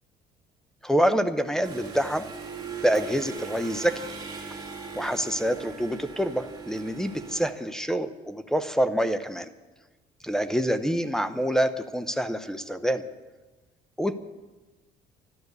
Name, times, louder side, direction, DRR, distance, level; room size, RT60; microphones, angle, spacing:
voice 1, 0.8-2.3 2.8-4.1 5.0-9.5 10.2-13.0 14.0-14.2, equal, 5° left, 11 dB, 0.8 m, -26 dB
sound 1, 1.6-7.5, right 5 dB, 25° right, 2.6 m, -39 dB
12.5 x 12.0 x 8.1 m, 1.2 s
cardioid pair, 110°, 17 cm